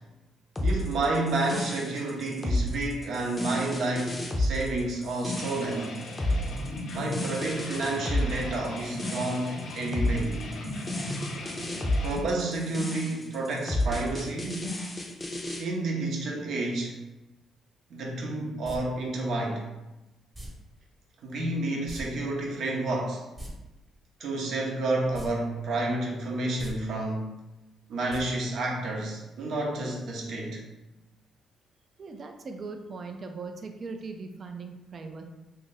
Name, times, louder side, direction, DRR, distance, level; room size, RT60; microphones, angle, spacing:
sound 1, 0.6-15.6, left 1 dB, 20° left, 0.5 m, -31 dB
voice 1, 0.6-5.9 6.9-10.3 12.0-14.7 15.6-17.0 17.9-19.7 21.2-23.2 24.2-27.4 27.9-30.6, right 2 dB, 70° right, -1 dB, 0.8 m, -30 dB
sound 2, 5.4-12.2, left 2 dB, 65° left, 0.5 m, -37 dB
sound 3, 18.6-18.8 20.3-20.5 21.9-22.0 22.3-22.4 23.2-23.5 25.1-25.3 25.7-25.8 26.5-26.7 28.1-28.2 28.5-28.6, equal, 15° right, 1.0 m, -40 dB
voice 2, 32.0-35.2, right 4 dB, 45° right, 5 dB, 0.4 m, -39 dB
2.7 x 2.5 x 3.9 m, 1.0 s
cardioid pair, 90°, 0 cm